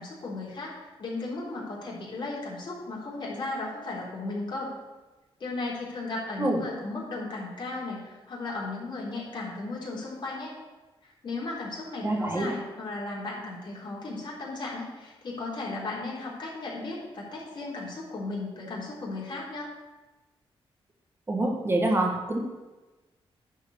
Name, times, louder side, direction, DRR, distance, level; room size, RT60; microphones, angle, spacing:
voice 1, 0.0-4.7 5.4-10.5 11.0-19.7, left 2 dB, 50° left, -5 dB, 3.6 m, -35 dB
voice 2, 12.0-12.5 21.3-22.4, right 1 dB, 25° right, 0 dB, 1.5 m, -26 dB
11.0 x 4.6 x 6.9 m, 1.2 s
wide cardioid pair, 115°, 10 cm